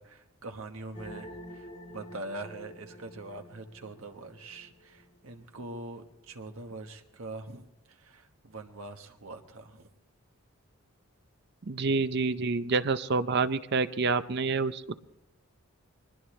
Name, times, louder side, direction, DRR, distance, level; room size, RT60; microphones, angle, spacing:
voice 1, 0.0-9.9, right 2 dB, 75° right, 5 dB, 1.4 m, -43 dB
sound 1, 0.9-5.4, equal, 35° left, 3.4 m, -48 dB
voice 2, 11.6-15.0, right 4 dB, 50° right, 12 dB, 0.5 m, -28 dB
22.5 x 20.0 x 3.2 m, 0.90 s
head